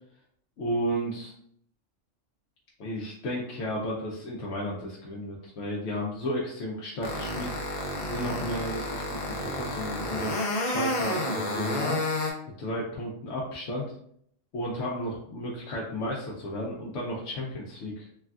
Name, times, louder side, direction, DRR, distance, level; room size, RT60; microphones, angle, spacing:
voice 1, 0.6-1.3 2.8-7.5 8.0-10.3 10.6-12.0 12.6-13.9 14.5-18.1, equal, 70° left, -4 dB, 0.8 m, -33 dB
sound 1, 7.0-12.3, left 1 dB, 50° left, 0.4 m, -30 dB
3.2 x 2.2 x 2.3 m, 0.67 s
omnidirectional pair, 1.3 m